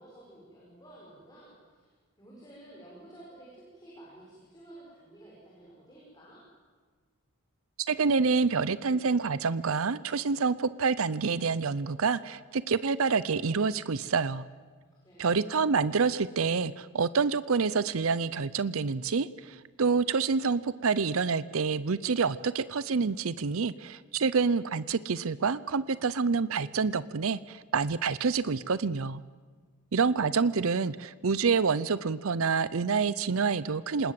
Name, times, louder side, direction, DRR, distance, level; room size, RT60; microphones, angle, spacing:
voice 1, 0.0-6.4 15.0-15.4, right 1 dB, 15° left, -5 dB, 6.3 m, -52 dB
voice 2, 7.9-14.4 15.2-29.2 29.9-34.1, right 5 dB, 65° right, 17 dB, 0.6 m, -27 dB
26.5 x 20.0 x 7.7 m, 1.5 s
head